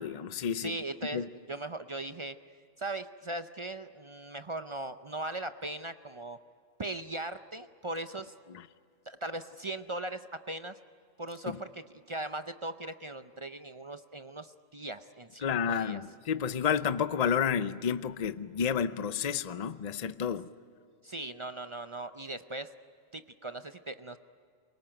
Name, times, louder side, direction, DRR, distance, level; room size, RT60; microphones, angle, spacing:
voice 1, 0.0-0.7 1.1-1.3 11.5-11.6 15.4-20.5, left 7 dB, 40° left, 14 dB, 0.6 m, -30 dB
voice 2, 0.5-2.4 2.8-6.4 6.8-8.3 9.1-10.8 11.2-16.0 21.0-22.7 23.1-24.2, right 2 dB, 35° right, 10 dB, 0.5 m, -39 dB
28.0 x 18.5 x 9.0 m, 2.3 s
omnidirectional pair, 1.3 m